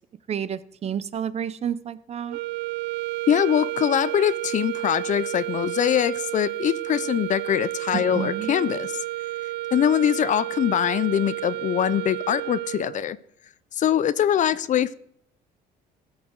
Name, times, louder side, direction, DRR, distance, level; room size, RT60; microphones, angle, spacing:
voice 1, 0.3-2.4 7.9-8.5, right 8 dB, 40° right, 16 dB, 0.5 m, -30 dB
sound 1, 2.3-13.2, right 17 dB, 90° right, 0.5 m, -31 dB
voice 2, 3.3-9.0 9.7-13.2 13.7-14.9, left 10 dB, 45° left, 17 dB, 0.5 m, -23 dB
15.0 x 6.5 x 4.7 m, 0.71 s
cardioid pair, 110°, 17 cm